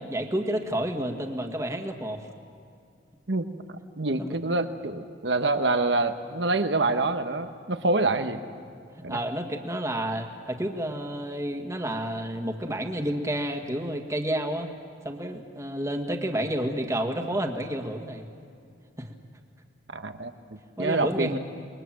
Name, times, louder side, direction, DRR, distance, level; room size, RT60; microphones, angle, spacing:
voice 1, 0.0-2.3 4.2-4.3 9.0-14.7 15.0-18.2 19.0-19.1 20.8-21.3, right 1 dB, 15° right, 4 dB, 1.9 m, -30 dB
voice 2, 4.0-8.4 9.0-9.2 19.9-20.3 20.8-21.4, right 2 dB, 70° right, 8 dB, 1.3 m, -26 dB
28.0 x 22.0 x 7.7 m, 2.3 s
head